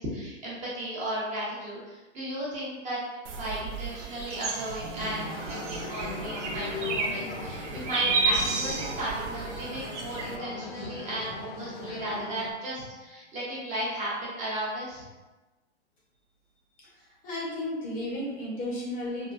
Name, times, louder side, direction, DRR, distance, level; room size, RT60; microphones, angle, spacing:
voice 1, 0.0-3.0 3.3-15.0, right 1 dB, 20° right, -6 dB, 0.7 m, -35 dB
sound 1, 3.2-10.4, right 4 dB, 85° right, 0.6 m, -32 dB
sound 2, 4.8-12.5, right 2 dB, 50° right, 0.9 m, -48 dB
sound 3, 5.0-12.5, left 4 dB, 60° left, 0.6 m, -39 dB
voice 2, 17.2-19.3, left 1 dB, 25° left, -5 dB, 0.7 m, -33 dB
3.7 x 2.2 x 2.4 m, 1.1 s
hypercardioid pair, 130°, 35 cm